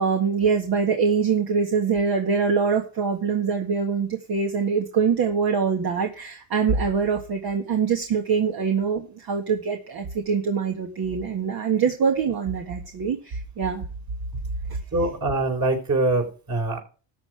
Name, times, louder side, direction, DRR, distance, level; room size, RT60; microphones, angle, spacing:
voice 1, 0.0-13.9, right 6 dB, 60° right, 3 dB, 1.9 m, -24 dB
voice 2, 14.9-16.8, right 2 dB, 40° right, 3 dB, 4.2 m, -23 dB
13.5 x 7.8 x 4.8 m, 0.37 s
supercardioid pair, 90°, 43 cm